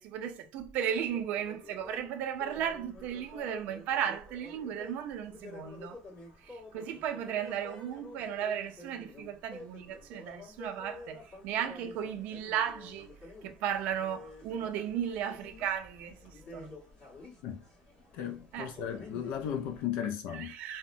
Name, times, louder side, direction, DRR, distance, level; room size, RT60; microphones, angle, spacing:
voice 1, 0.0-6.0 6.4-13.1 13.4-16.8 18.5-18.7 20.3-20.8, right 9 dB, 70° right, 0.4 m, -35 dB
sound 1, 0.9-19.8, left 2 dB, 50° left, 1.4 m, -50 dB
voice 2, 18.1-20.6, left 9 dB, 80° left, 0.4 m, -35 dB
2.8 x 2.1 x 2.5 m
cardioid pair, 135°, 3 cm